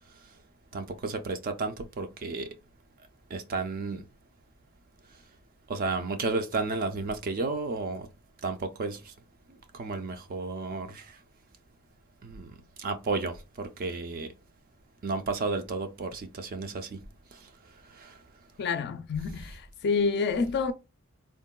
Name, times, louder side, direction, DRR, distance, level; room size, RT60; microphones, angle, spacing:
voice 1, 0.7-2.5 3.3-4.0 5.7-8.1 8.4-9.1 9.7-11.2 12.2-12.5 12.8-14.3 15.0-17.0 17.3-17.4 17.9-18.2, right 3 dB, 40° right, 0.4 m, -32 dB
voice 2, 18.6-20.7, left 5 dB, 50° left, 0.4 m, -28 dB
3.5 x 2.2 x 2.2 m
head